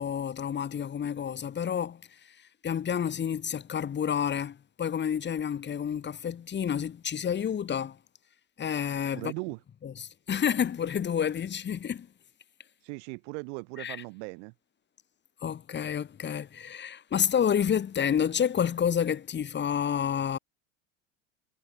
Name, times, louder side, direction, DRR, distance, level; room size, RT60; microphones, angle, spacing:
voice 1, 0.0-8.0 8.6-9.3 9.8-12.1 13.8-14.0 15.4-20.4, left 8 dB, 30° left, 1.5 m, -29 dB
voice 2, 9.1-9.6 12.8-14.5, right 39 dB, 65° right, 5.2 m, -38 dB
hypercardioid pair, 80°, 38 cm